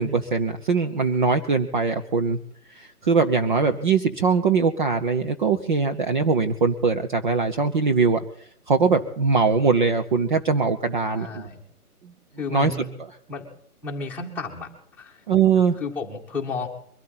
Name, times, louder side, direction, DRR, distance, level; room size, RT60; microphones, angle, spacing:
voice 1, 0.0-2.4 2.7-8.2 8.7-11.5 12.0-12.1 12.5-12.7 15.3-15.8, right 5 dB, 30° right, 6 dB, 0.9 m, -21 dB
voice 2, 11.1-11.6 12.4-12.9 13.3-13.5 13.8-14.7 15.0-15.2 15.8-16.7, left 4 dB, 5° left, -3 dB, 2.0 m, -32 dB
23.0 x 13.0 x 4.2 m, 0.63 s
figure-of-eight pair, 145°, 46 cm